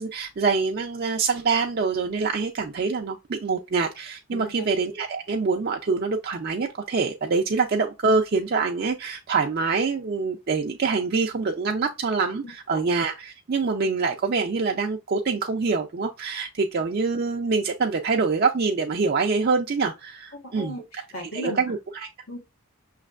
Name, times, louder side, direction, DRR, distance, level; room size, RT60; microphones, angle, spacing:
voice 1, 0.0-20.7 21.3-22.1, right 4 dB, 45° right, 0.4 m, -25 dB
voice 2, 4.3-4.7 12.4-12.8 20.3-21.6 22.3-22.4, equal, 85° left, 1.4 m, -37 dB
5.9 x 3.2 x 2.4 m
head